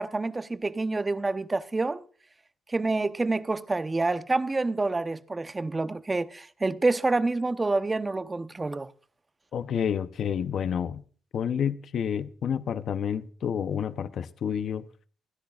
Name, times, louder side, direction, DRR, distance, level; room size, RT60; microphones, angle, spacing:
voice 1, 0.0-2.0 2.7-8.9, right 3 dB, 20° right, 0.8 m, -27 dB
voice 2, 9.5-11.0 11.3-14.8, left 8 dB, 60° left, 0.7 m, -29 dB
29.0 x 10.0 x 2.4 m
cardioid pair, 90°, 0 cm